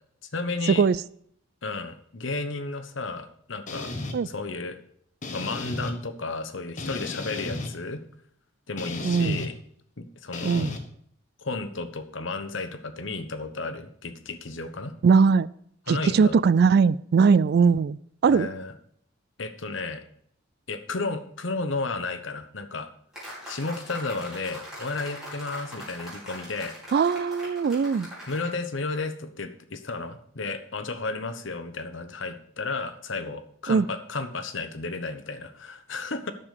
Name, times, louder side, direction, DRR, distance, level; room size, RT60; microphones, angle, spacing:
voice 1, 0.3-0.8 1.6-3.9 4.2-4.8 5.3-8.0 8.7-9.5 10.0-10.7 11.4-14.9 15.9-16.4 18.3-18.7 19.4-20.0 20.7-22.9 23.5-26.7 28.3-36.3, left 3 dB, 70° left, 10 dB, 1.1 m, -33 dB
sound 1, 3.7-4.2 5.2-5.9 6.8-7.7 8.8-9.5 10.3-10.8, left 2 dB, 40° left, 1.5 m, -34 dB
voice 2, 9.0-9.5 10.4-10.8 15.0-15.5 15.9-18.5 26.9-28.1 33.7-33.9, right 5 dB, 55° right, 20 dB, 0.3 m, -20 dB
sound 2, 23.1-28.5, equal, 5° right, 5.6 m, -41 dB
9.9 x 6.9 x 6.6 m, 0.66 s
head